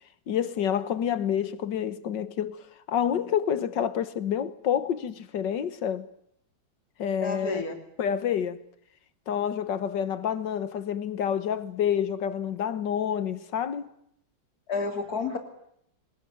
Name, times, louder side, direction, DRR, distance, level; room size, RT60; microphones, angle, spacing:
voice 1, 0.3-2.6 2.9-6.1 7.0-7.6 8.0-8.6 9.3-13.9, left 9 dB, 65° left, 1.8 m, -28 dB
voice 2, 7.2-7.7 14.7-15.4, left 4 dB, 45° left, 3.5 m, -30 dB
22.5 x 20.5 x 9.3 m
omnidirectional pair, 2.2 m